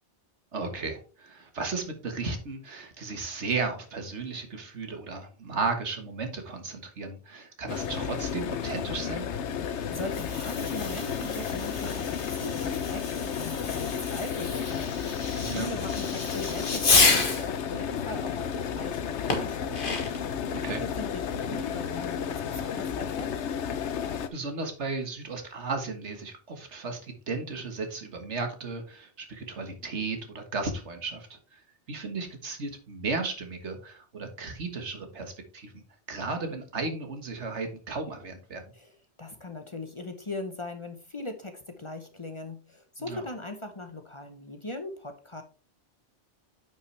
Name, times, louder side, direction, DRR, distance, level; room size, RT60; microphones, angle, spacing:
voice 1, 0.5-9.3 15.4-15.7 20.5-20.8 24.3-35.8 36.1-38.6 43.0-43.2, right 4 dB, 80° right, 5 dB, 1.8 m, -35 dB
sound 1, 7.7-24.3, left 7 dB, 80° left, 1.1 m, -32 dB
voice 2, 9.5-20.0 20.8-23.4 38.7-38.9 39.2-45.4, left 2 dB, 30° left, 6 dB, 0.8 m, -40 dB
Fireworks, 9.8-17.5 19.3-20.3, left 3 dB, 50° left, 1.6 m, -29 dB
9.2 x 5.7 x 3.3 m, 0.36 s
omnidirectional pair, 1.2 m